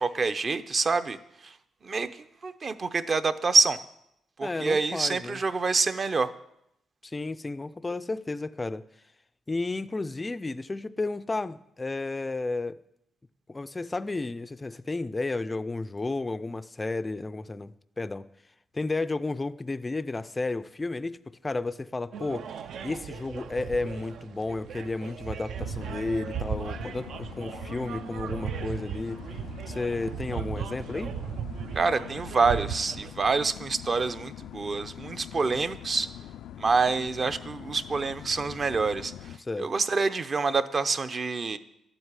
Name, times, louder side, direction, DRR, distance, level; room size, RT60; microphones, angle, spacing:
voice 1, 0.0-1.5 1.8-2.1 2.4-3.8 4.4-6.3 31.7-36.1 36.6-41.6, right 4 dB, 30° right, 0.7 m, -26 dB
voice 2, 4.4-5.4 7.0-8.8 9.5-12.8 13.5-18.3 18.7-22.5 22.8-29.2 29.7-31.1 39.4-39.7, left 3 dB, 15° left, 0.4 m, -32 dB
sound 1, 22.1-33.1, right 8 dB, 65° right, 0.6 m, -37 dB
sound 2, 25.6-39.4, left 11 dB, 90° left, 0.5 m, -43 dB
12.5 x 7.9 x 9.8 m
wide cardioid pair, 170°, 0 cm